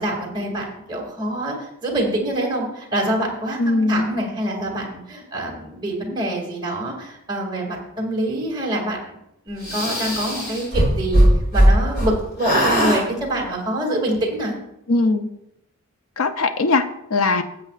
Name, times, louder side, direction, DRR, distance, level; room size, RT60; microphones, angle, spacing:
voice 1, 0.0-1.6 1.8-9.2 9.5-11.2 11.5-14.6, right 1 dB, 20° right, -1 dB, 2.2 m, -25 dB
voice 2, 3.6-4.1 14.9-15.3 16.2-16.8 17.1-17.4, left 3 dB, 70° left, 8 dB, 0.6 m, -19 dB
sound 1, 9.6-12.1 12.4-13.0, equal, 50° left, 3.8 m, -18 dB
15.0 x 7.9 x 2.4 m, 0.81 s
head